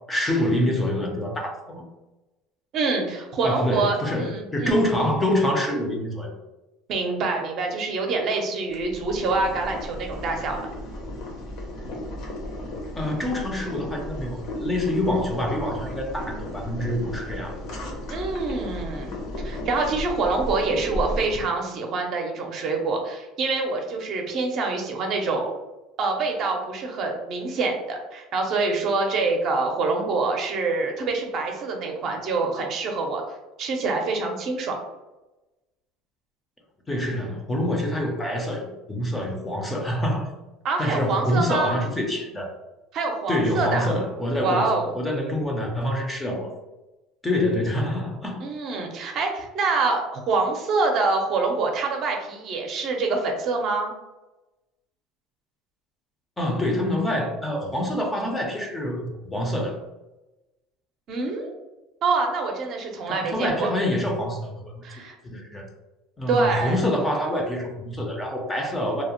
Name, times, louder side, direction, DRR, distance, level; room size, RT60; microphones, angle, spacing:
voice 1, 0.0-1.9 3.4-6.4 13.0-17.6 36.9-40.3 40.8-42.5 43.3-46.5 47.2-48.4 56.4-59.8 63.1-64.9 65.2-65.6 66.2-69.0, left 1 dB, 10° left, 1 dB, 0.5 m, -26 dB
voice 2, 2.7-4.8 6.9-10.7 18.1-19.1 19.4-25.5 26.0-33.2 33.6-34.7 40.6-41.8 42.9-43.9 44.4-44.9 48.4-53.9 61.1-61.5 62.0-63.7 64.8-65.1 66.3-66.8, right 3 dB, 45° right, 2 dB, 0.5 m, -26 dB
Boiling, 8.7-21.4, left 1 dB, 55° left, 0.7 m, -34 dB
2.7 x 2.0 x 2.8 m, 1.0 s
cardioid pair, 140°, 0 cm